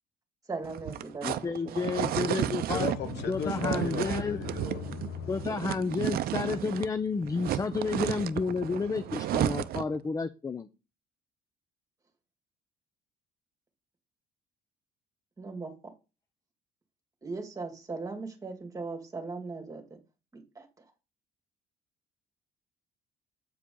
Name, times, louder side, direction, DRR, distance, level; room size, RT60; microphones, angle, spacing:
voice 1, 0.5-1.4 1.6-1.9 15.4-15.7 17.2-19.8 20.3-20.7, right 3 dB, 20° right, 2.2 m, -38 dB
sound 1, 0.6-7.0 7.2-10.0, right 12 dB, 65° right, 0.6 m, -33 dB
voice 2, 1.2-2.9 3.3-4.4 5.3-10.7, left 4 dB, 20° left, 0.5 m, -31 dB
voice 3, 2.7-5.5, left 6 dB, 75° left, 1.2 m, -35 dB
8.4 x 4.8 x 3.9 m
cardioid pair, 110°, 17 cm